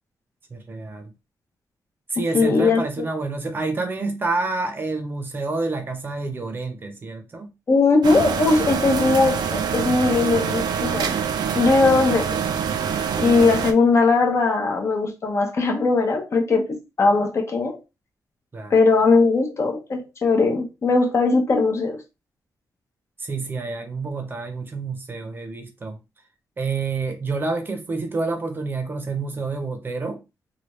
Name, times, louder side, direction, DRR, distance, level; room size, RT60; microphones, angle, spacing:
voice 1, 0.5-1.1 2.1-7.5 18.5-18.7 23.2-26.0 26.6-30.2, right 3 dB, 30° right, 0.6 m, -28 dB
voice 2, 2.3-2.8 7.7-11.2 11.5-12.4 13.2-17.8 18.7-22.0, left 3 dB, 45° left, 0.7 m, -19 dB
sound 1, 8.0-13.7, right 7 dB, 90° right, 0.4 m, -25 dB
3.3 x 2.3 x 3.0 m
wide cardioid pair, 145°, 7 cm